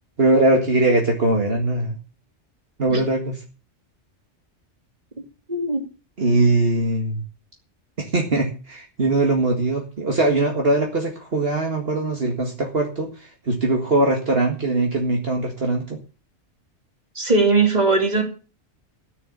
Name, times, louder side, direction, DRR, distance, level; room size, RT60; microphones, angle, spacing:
voice 1, 0.2-2.0 2.8-3.4 6.2-7.2 8.0-16.0, right 2 dB, 55° right, 1 dB, 2.2 m, -21 dB
voice 2, 5.5-5.9 17.2-18.2, right 3 dB, 35° right, 4 dB, 2.8 m, -19 dB
14.0 x 6.9 x 8.1 m, 0.35 s
omnidirectional pair, 1.2 m